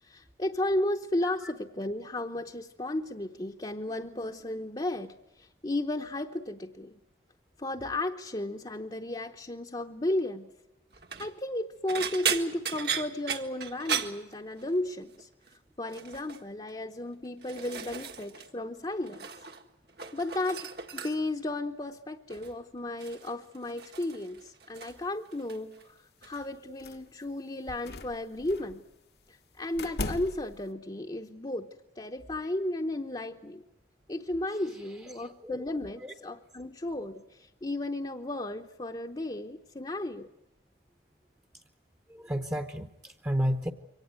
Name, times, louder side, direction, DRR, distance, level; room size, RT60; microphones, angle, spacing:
voice 1, 0.0-7.0 7.6-10.5 11.2-15.3 15.8-19.3 20.1-28.8 29.3-31.7 32.0-33.6 34.1-40.3, left 1 dB, 25° left, 2 dB, 0.9 m, -34 dB
sound 1, 10.9-11.3 11.9-14.9 15.2-15.5 15.9-16.4 17.1-18.5 18.8-19.6 19.9-21.4 22.3-22.6 23.0-25.1 25.3-25.9 26.2-26.4 27.7-27.8, right 7 dB, 60° right, 1.7 m, -36 dB
sound 2, 26.8-27.2 27.7-28.8 29.7-30.7, left 2 dB, 60° left, 1.0 m, -38 dB
voice 2, 35.2-35.6 36.0-36.1 42.1-43.7, equal, 15° right, 6 dB, 0.9 m, -32 dB
24.0 x 18.0 x 9.5 m, 0.95 s
head